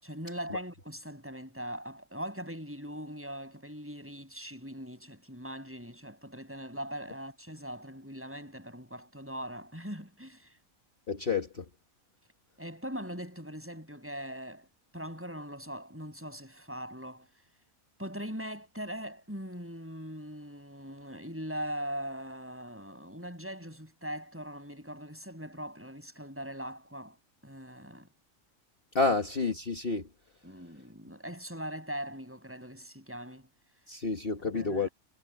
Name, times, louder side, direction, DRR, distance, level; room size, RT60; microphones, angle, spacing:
voice 1, 0.0-10.6 12.6-14.7 14.9-17.3 18.0-27.2 27.4-28.1 29.0-29.1 30.4-33.5 34.5-34.9, equal, 10° right, 7.8 m, -41 dB
voice 2, 11.1-11.7 28.9-30.1 33.9-34.9, left 4 dB, 40° left, 1.8 m, -29 dB
omnidirectional pair, 1.5 m